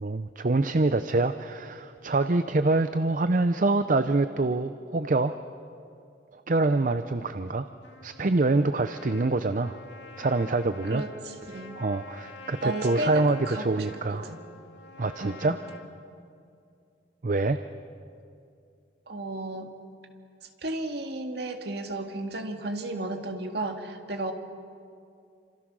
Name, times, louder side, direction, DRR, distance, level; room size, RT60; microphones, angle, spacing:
voice 1, 0.0-5.3 6.3-7.7 8.0-9.8 10.2-11.0 11.8-14.3 15.0-15.6 17.2-17.6, right 2 dB, 45° right, 10 dB, 0.6 m, -25 dB
Trumpet, 7.8-15.9, left 3 dB, 75° left, 2.1 m, -47 dB
voice 2, 10.9-11.8 12.6-14.4 15.2-15.6 19.1-19.7 20.6-24.3, right 2 dB, 65° right, 5 dB, 2.1 m, -34 dB
28.5 x 26.5 x 6.3 m, 2.4 s
head